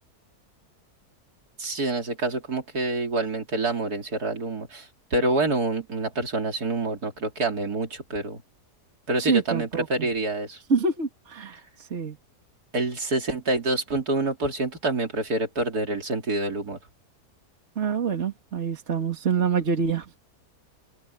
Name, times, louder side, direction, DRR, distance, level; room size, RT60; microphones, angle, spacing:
voice 1, 1.6-8.4 9.1-10.6 12.7-16.8, right 2 dB, 80° right, 3.6 m, -27 dB
voice 2, 9.2-10.1 10.7-11.6 11.9-12.2 17.8-20.1, right 5 dB, 50° right, 2.2 m, -26 dB
omnidirectional pair, 1.6 m